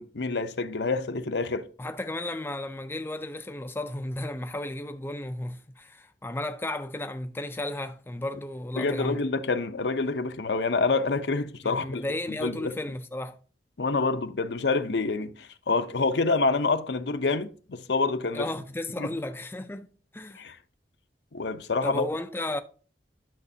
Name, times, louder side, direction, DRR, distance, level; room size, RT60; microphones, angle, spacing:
voice 1, 0.0-1.7 8.8-12.0 12.4-12.7 13.8-18.5 19.0-19.1 20.4-20.6 21.3-22.0, left 3 dB, 75° left, 0.6 m, -27 dB
voice 2, 1.8-9.2 11.6-13.4 18.3-19.9 20.1-20.4 21.8-22.6, left 1 dB, 10° left, 0.4 m, -34 dB
10.5 x 6.4 x 2.7 m
head